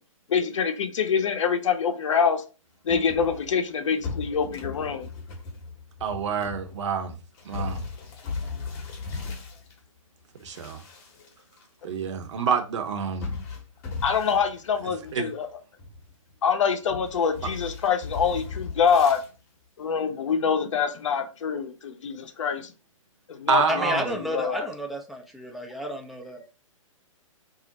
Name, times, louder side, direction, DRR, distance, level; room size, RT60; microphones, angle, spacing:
voice 1, 0.3-2.4 2.8-5.1 14.0-15.5 16.4-19.2 19.8-22.7 23.3-24.7, left 6 dB, 65° left, 0.6 m, -25 dB
sound 1, 2.9-9.8 10.3-11.6 11.9-12.0 13.2-15.5 15.8-16.3 16.9-19.3, left 4 dB, 30° left, 0.8 m, -37 dB
voice 2, 6.0-7.2 7.4-7.9 10.4-10.8 11.8-13.3 15.1-15.3 23.5-24.1, right 6 dB, 55° right, 0.8 m, -27 dB
voice 3, 23.7-26.5, equal, ahead, 0.3 m, -32 dB
2.5 x 2.0 x 3.9 m
hypercardioid pair, 130°, 17 cm